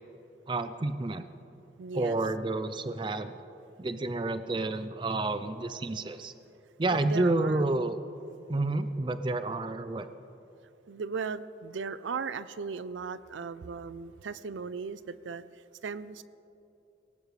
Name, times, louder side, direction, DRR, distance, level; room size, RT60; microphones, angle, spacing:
voice 1, 0.5-1.3 1.9-3.3 3.8-6.3 6.8-8.0 8.5-10.1, right 2 dB, 25° right, 11 dB, 0.4 m, -29 dB
voice 2, 1.8-2.2 6.9-7.6 10.9-15.4 15.8-16.2, right 5 dB, 85° right, 15 dB, 0.5 m, -37 dB
19.0 x 17.5 x 3.3 m, 2.9 s
head